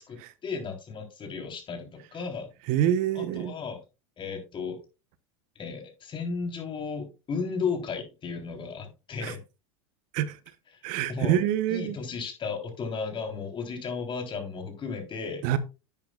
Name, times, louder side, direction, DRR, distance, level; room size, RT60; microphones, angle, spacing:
voice 1, 0.0-2.5 3.1-3.8 4.2-4.8 5.6-9.4 11.1-11.4 11.7-15.4, left 5 dB, 30° left, 3.5 m, -34 dB
voice 2, 2.7-3.5 9.2-9.3 10.1-10.4 10.8-12.0 15.4-15.6, right 11 dB, 55° right, 0.9 m, -26 dB
11.0 x 8.8 x 2.4 m
hypercardioid pair, 90°, 16 cm